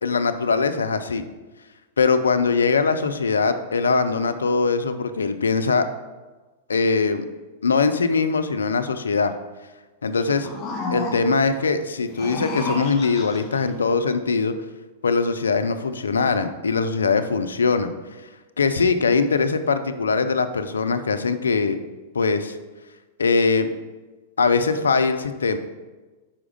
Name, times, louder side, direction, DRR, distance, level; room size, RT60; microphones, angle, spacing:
voice 1, 0.0-1.2 2.0-5.9 6.7-7.2 7.6-9.3 10.0-10.5 10.9-14.5 15.0-17.9 18.6-21.8 22.1-22.6 23.2-23.7 24.4-25.6, left 4 dB, 80° left, 10 dB, 0.5 m, -21 dB
sound 1, 10.1-11.5 12.0-13.6, left 2 dB, 35° left, 2.0 m, -31 dB
5.6 x 4.8 x 5.1 m, 1.2 s
hypercardioid pair, 105°, 0 cm